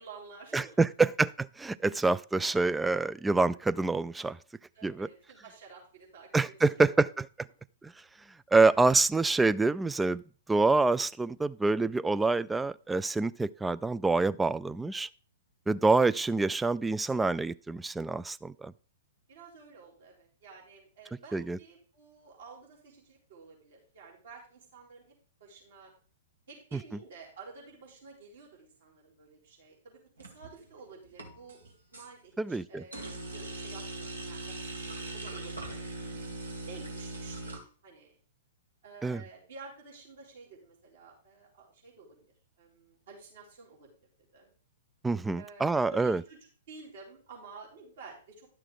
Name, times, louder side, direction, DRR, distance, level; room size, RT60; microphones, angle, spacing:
voice 1, 0.0-0.9 4.7-7.1 15.7-15.8 19.3-25.1 25.4-25.9 26.5-35.9 36.7-38.2 38.8-43.9 44.3-44.5 45.3-46.4 46.7-48.5, right 4 dB, 60° right, -3 dB, 3.7 m, -51 dB
voice 2, 0.5-4.4 4.8-5.1 6.3-7.3 8.5-10.2 10.5-15.1 15.7-18.7 21.3-21.6 26.7-26.8 32.4-32.8 39.0-39.2 45.0-46.2, right 3 dB, 10° right, 16 dB, 0.3 m, -26 dB
sound 1, 30.2-30.7 31.1-32.1 32.9-37.6, right 2 dB, 75° right, 2.1 m, -40 dB
11.5 x 6.7 x 3.8 m, 0.41 s
figure-of-eight pair, 110°, 0 cm